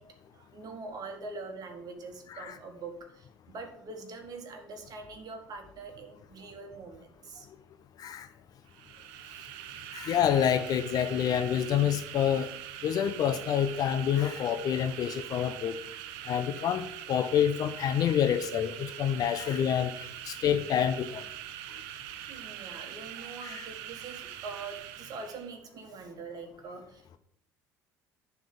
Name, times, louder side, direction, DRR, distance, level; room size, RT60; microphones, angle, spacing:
voice 1, 0.0-7.5 8.4-8.5 22.3-27.2, right 3 dB, 45° right, 1.6 m, -44 dB
sound 1, 8.7-25.5, right 11 dB, 65° right, 0.6 m, -43 dB
voice 2, 9.9-12.5 12.8-15.8 16.3-21.2 23.4-23.7, left 9 dB, 50° left, 0.7 m, -28 dB
10.5 x 3.6 x 6.8 m
hypercardioid pair, 60°, 9 cm